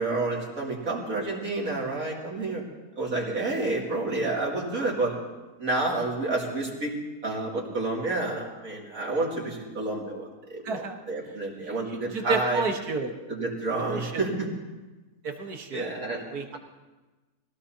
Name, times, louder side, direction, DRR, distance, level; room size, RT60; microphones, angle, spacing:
voice 1, 0.0-2.6 3.0-5.1 5.6-6.9 7.2-10.8 11.1-12.6 13.3-14.5 15.7-16.2, right 2 dB, 60° right, -3 dB, 3.1 m, -29 dB
voice 2, 10.6-11.0 11.6-13.1 13.9-14.2 15.2-16.6, right 3 dB, 85° right, 3 dB, 1.9 m, -31 dB
22.5 x 16.5 x 2.9 m, 1.2 s
omnidirectional pair, 1.6 m